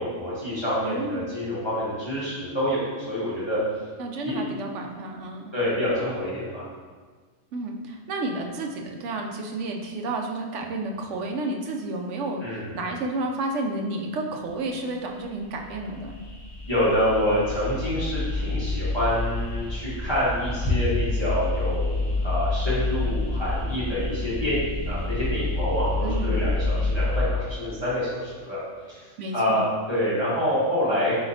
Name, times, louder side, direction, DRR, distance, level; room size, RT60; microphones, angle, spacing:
voice 1, 0.0-3.6 4.2-4.3 5.5-6.6 12.4-12.7 16.7-28.6 28.9-29.1 29.3-31.1, equal, 20° left, -10 dB, 1.1 m, -27 dB
voice 2, 0.8-1.3 4.0-5.5 7.5-16.2 26.0-26.4 29.2-29.7, right 2 dB, 70° right, 2 dB, 0.8 m, -31 dB
sound 1, 15.3-27.3, left 2 dB, 50° left, 0.3 m, -28 dB
4.4 x 3.9 x 2.7 m, 1.5 s
omnidirectional pair, 1.4 m